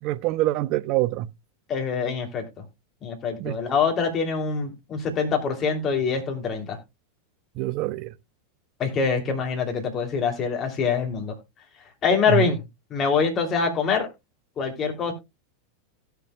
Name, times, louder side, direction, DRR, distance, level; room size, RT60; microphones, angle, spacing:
voice 1, 0.0-1.3 3.4-3.6 7.6-8.1 12.3-12.5, right 15 dB, 50° right, 0.5 m, -25 dB
voice 2, 1.7-2.6 3.0-6.8 8.8-11.3 12.0-12.6 12.9-14.1 14.6-15.1, left 5 dB, 35° left, 2.9 m, -24 dB
17.0 x 6.9 x 2.3 m
hypercardioid pair, 95°, 0 cm